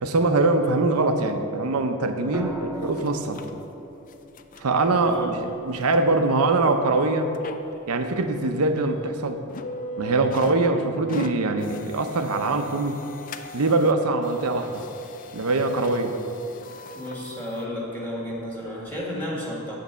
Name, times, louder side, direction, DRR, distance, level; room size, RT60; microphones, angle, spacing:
voice 1, 0.0-3.4 4.6-7.3 7.9-9.4 10.0-13.0 13.5-14.8 15.3-16.1, right 2 dB, 85° right, 7 dB, 0.7 m, -23 dB
sound 1, 2.3-6.5 8.2-8.5, right 1 dB, 10° right, 0.5 m, -38 dB
sound 2, 2.8-3.5 4.0-4.7 5.1-5.2 5.9-6.0 6.5-6.6 7.3-7.9 8.3-8.4 8.8-9.1 9.5-10.7 10.9-14.0 14.2-17.7 18.4-18.5 18.9-19.0, left 2 dB, 40° left, 0.4 m, -39 dB
voice 2, 16.9-19.8, left 1 dB, 10° left, -4 dB, 1.6 m, -32 dB
8.4 x 5.2 x 6.7 m, 2.8 s
head